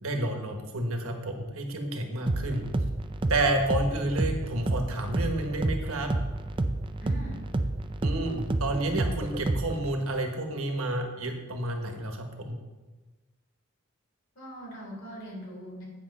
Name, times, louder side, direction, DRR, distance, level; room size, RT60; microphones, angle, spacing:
voice 1, 0.0-2.6 3.3-6.1 8.0-12.6, right 1 dB, 90° right, 4 dB, 1.3 m, -30 dB
sound 1, 2.3-9.9, right 2 dB, 25° right, 0.4 m, -30 dB
voice 2, 7.0-7.4 14.4-15.8, right 1 dB, 65° left, -3 dB, 3.4 m, -41 dB
8.7 x 6.2 x 5.4 m, 1.2 s
head